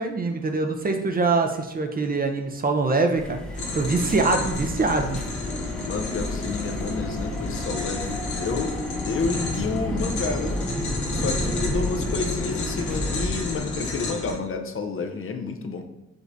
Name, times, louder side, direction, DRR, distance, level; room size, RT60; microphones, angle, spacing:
voice 1, 0.0-3.4 3.7-5.2, right 3 dB, 30° right, 5 dB, 0.5 m, -24 dB
sound 1, 3.2-13.3, left 1 dB, 5° left, 0.8 m, -31 dB
sound 2, 3.5-14.3, left 3 dB, 75° left, 1.1 m, -32 dB
voice 2, 5.9-8.8 9.1-10.6 11.1-15.8, left 4 dB, 45° left, 5 dB, 0.6 m, -30 dB
5.0 x 3.1 x 2.6 m, 0.92 s
cardioid pair, 70°, 29 cm